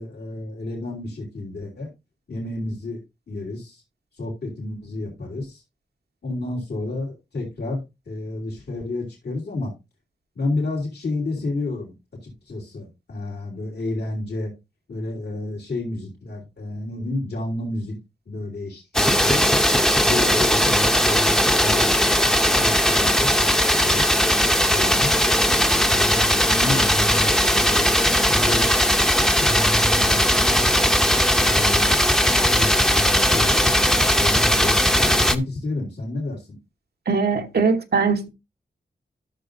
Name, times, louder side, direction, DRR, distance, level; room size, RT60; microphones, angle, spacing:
voice 1, 0.0-1.9 2.3-3.0 3.3-3.8 4.2-5.6 6.2-9.7 10.3-11.9 12.2-14.5 14.9-17.9 18.3-19.5 20.0-23.5 23.7-24.0 24.6-25.1 25.9-28.7 29.2-30.7 31.4-32.0 32.4-36.6, left 2 dB, 85° left, 3.2 m, -30 dB
sound 1, 18.9-35.4, equal, 5° left, 0.7 m, -19 dB
voice 2, 37.1-38.3, right 5 dB, 75° right, 1.1 m, -21 dB
12.0 x 6.6 x 2.6 m
wide cardioid pair, 95°, 17 cm